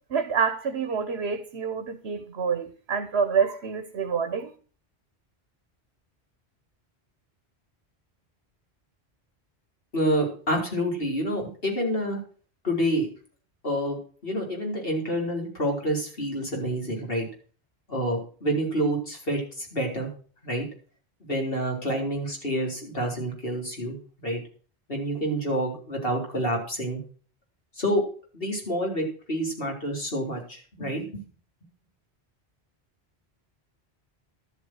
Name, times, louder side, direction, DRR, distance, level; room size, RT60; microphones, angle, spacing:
voice 1, 0.1-4.5, right 6 dB, 80° right, 1.3 m, -27 dB
voice 2, 9.9-12.2 12.6-13.1 13.6-17.2 17.9-20.1 20.4-20.6 21.2-24.4 24.9-27.0 27.8-28.0 28.3-31.2, equal, 60° left, 4.5 m, -28 dB
12.5 x 8.4 x 6.2 m
omnidirectional pair, 1.1 m